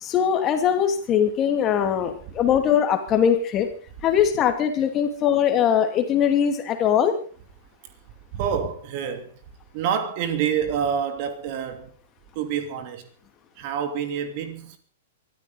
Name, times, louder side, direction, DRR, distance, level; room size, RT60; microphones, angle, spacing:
voice 1, 0.0-3.7 4.0-7.2, left 8 dB, 25° left, 2.6 m, -21 dB
voice 2, 8.3-9.3 9.7-11.9 12.3-13.1 13.6-14.8, right 8 dB, 40° right, 2.9 m, -27 dB
23.0 x 13.5 x 4.1 m
figure-of-eight pair, 105°, 0 cm